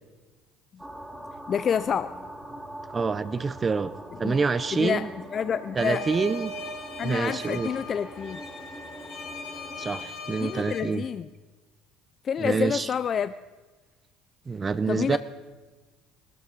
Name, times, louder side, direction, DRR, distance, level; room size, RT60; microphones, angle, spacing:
sound 1, 0.8-10.1, right 1 dB, 5° right, 2.4 m, -43 dB
voice 1, 1.5-2.2 4.2-4.4 4.7-6.1 7.0-8.4 10.4-11.3 12.2-13.3 14.9-15.2, left 7 dB, 45° left, 14 dB, 0.4 m, -28 dB
voice 2, 2.9-3.9 4.2-5.1 5.8-6.5 7.0-7.7 9.8-11.0 12.4-12.9 14.5-15.2, right 4 dB, 30° right, 14 dB, 0.7 m, -27 dB
sound 2, 5.8-10.8, left 2 dB, 75° left, 3.3 m, -39 dB
19.0 x 13.0 x 5.2 m, 1.3 s
supercardioid pair, 80°, 0 cm